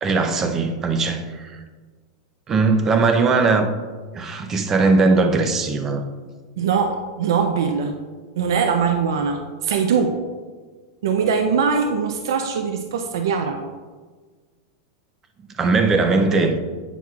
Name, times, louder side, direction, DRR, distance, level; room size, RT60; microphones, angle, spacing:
voice 1, 0.0-1.5 2.5-3.7 4.1-6.0 15.6-16.6, right 3 dB, 15° right, 7 dB, 0.5 m, -19 dB
voice 2, 6.6-7.9 8.3-10.2 11.0-13.6, right 6 dB, 80° right, 5 dB, 0.5 m, -21 dB
8.9 x 6.0 x 2.3 m, 1.4 s
supercardioid pair, 170°, 2 cm